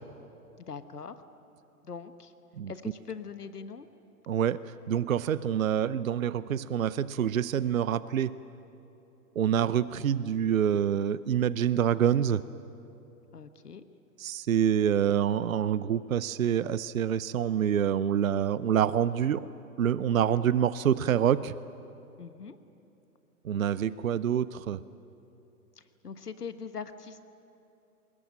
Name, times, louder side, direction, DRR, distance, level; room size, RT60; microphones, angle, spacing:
voice 1, 0.7-1.1 1.8-2.3 2.7-3.9 13.3-13.8 22.2-22.6 25.8-27.2, left 6 dB, 75° left, 11 dB, 1.4 m, -41 dB
voice 2, 4.3-8.3 9.4-12.4 14.2-19.5 19.8-21.5 23.4-24.8, right 9 dB, 60° right, 18 dB, 0.7 m, -26 dB
23.5 x 21.5 x 9.0 m, 2.8 s
figure-of-eight pair, 120°, 47 cm